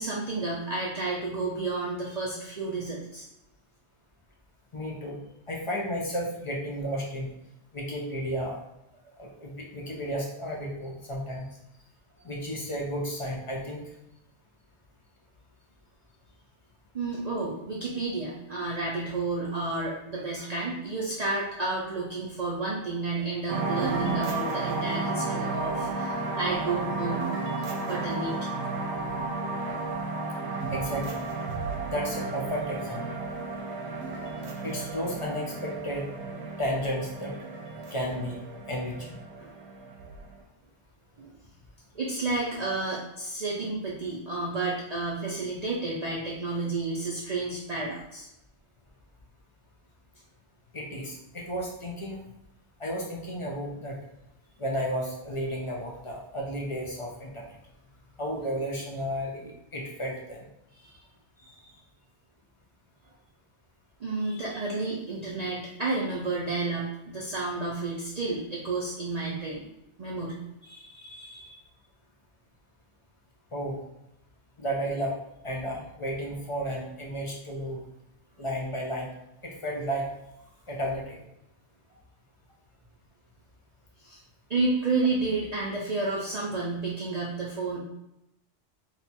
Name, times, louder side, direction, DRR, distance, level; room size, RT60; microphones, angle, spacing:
voice 1, 0.0-3.2 16.9-27.2 27.8-28.5 39.4-39.5 41.2-41.3 41.9-48.3 60.8-61.0 61.4-61.6 64.0-69.7 70.0-70.4 70.6-71.6 84.0-84.2 84.5-87.8, right 3 dB, 45° right, -5 dB, 0.6 m, -31 dB
voice 2, 4.7-5.2 5.5-7.3 7.7-8.6 9.2-11.5 12.2-13.9 30.0-30.1 30.7-31.2 31.8-33.2 34.6-36.1 36.6-37.4 37.9-38.4 38.7-39.2 50.7-52.2 52.8-54.0 54.6-57.6 58.2-60.5 64.7-64.8 73.5-73.8 74.6-75.2 75.4-77.8 78.4-79.1 79.4-80.1 80.7-81.2, equal, 35° left, -2 dB, 0.5 m, -33 dB
sound 1, 23.5-40.4, right 3 dB, 90° right, 0.9 m, -33 dB
2.9 x 2.3 x 4.1 m, 0.86 s
omnidirectional pair, 1.1 m